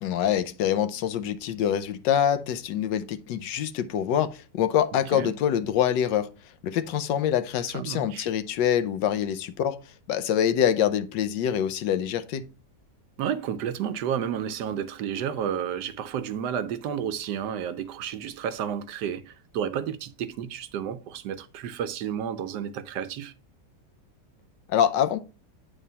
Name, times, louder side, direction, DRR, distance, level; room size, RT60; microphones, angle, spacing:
voice 1, 0.0-6.3 6.6-9.8 10.1-12.4 24.7-25.2, left 9 dB, 80° left, 1.4 m, -25 dB
voice 2, 7.7-8.3 13.2-23.3, right 8 dB, 75° right, 1.2 m, -31 dB
8.7 x 3.4 x 5.5 m
omnidirectional pair, 1.9 m